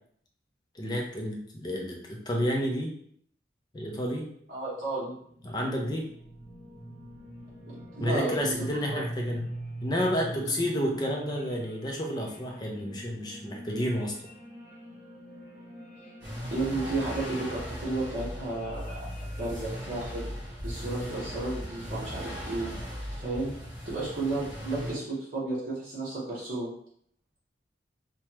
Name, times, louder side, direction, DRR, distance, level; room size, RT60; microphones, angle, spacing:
voice 1, 0.7-2.9 3.7-4.3 5.4-6.0 8.0-9.5 9.8-14.1, equal, 20° left, 0 dB, 0.5 m, -30 dB
voice 2, 4.5-5.2 7.9-9.0 16.5-19.0 19.4-20.2 20.6-22.7 23.1-23.5 23.9-26.7, right 2 dB, 50° right, -9 dB, 0.9 m, -33 dB
sound 1, 4.6-23.0, right 1 dB, 60° left, 0.9 m, -46 dB
Porsche Exhaust, 16.2-24.9, equal, 15° right, 1.3 m, -38 dB
3.1 x 2.2 x 2.9 m, 0.64 s
head